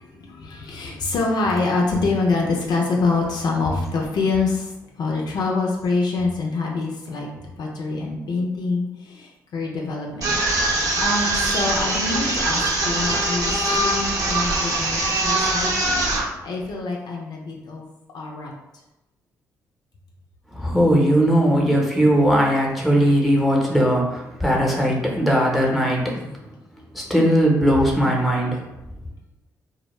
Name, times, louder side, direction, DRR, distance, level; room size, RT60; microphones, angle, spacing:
voice 1, 0.0-10.3 11.0-16.0 16.4-17.9 18.1-18.5 26.1-26.3, left 3 dB, 65° left, -1 dB, 0.5 m, -25 dB
sound 1, 10.2-16.2, right 2 dB, 55° right, 0.8 m, -22 dB
voice 2, 20.5-26.1 26.9-28.6, equal, ahead, -1 dB, 0.8 m, -19 dB
2.2 x 2.0 x 3.1 m, 0.95 s
hypercardioid pair, 50°, 8 cm